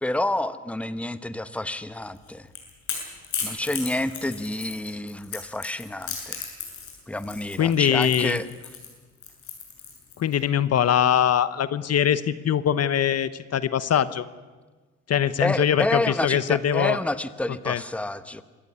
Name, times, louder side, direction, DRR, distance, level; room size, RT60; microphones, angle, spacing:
voice 1, 0.0-2.5 3.4-6.4 7.1-8.5 15.4-18.4, left 1 dB, 5° left, 12 dB, 1.1 m, -29 dB
Crackle / Crack, 2.2-10.3, left 6 dB, 70° left, 7.6 m, -35 dB
voice 2, 7.6-8.4 10.2-14.2 15.1-17.0 17.7-17.8, left 9 dB, 55° left, 15 dB, 1.0 m, -22 dB
26.0 x 14.5 x 9.6 m, 1.3 s
cardioid pair, 90°, 30 cm